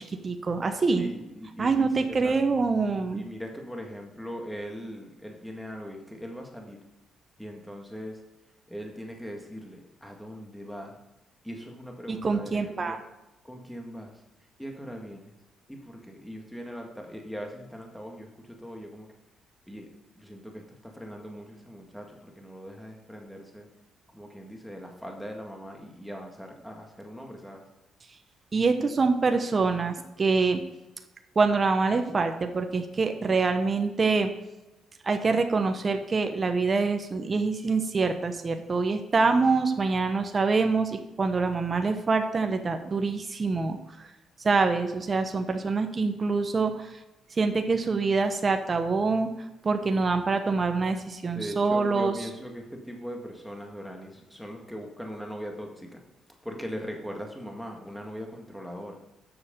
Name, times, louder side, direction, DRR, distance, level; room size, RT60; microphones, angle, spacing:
voice 1, 0.0-1.1 1.6-3.2 12.1-13.0 28.5-30.6 31.4-34.3 35.0-43.8 44.4-46.9 47.4-49.3 49.6-52.1, right 4 dB, 35° right, 6 dB, 0.9 m, -25 dB
voice 2, 0.9-2.6 3.1-6.8 7.4-8.2 8.7-10.9 11.4-13.0 13.4-14.1 14.6-15.3 15.7-19.1 19.7-19.9 20.2-23.7 24.1-27.6 51.3-56.0 56.4-59.0, equal, ahead, 1 dB, 1.8 m, -40 dB
7.9 x 6.3 x 5.2 m, 1.0 s
cardioid pair, 90°, 0 cm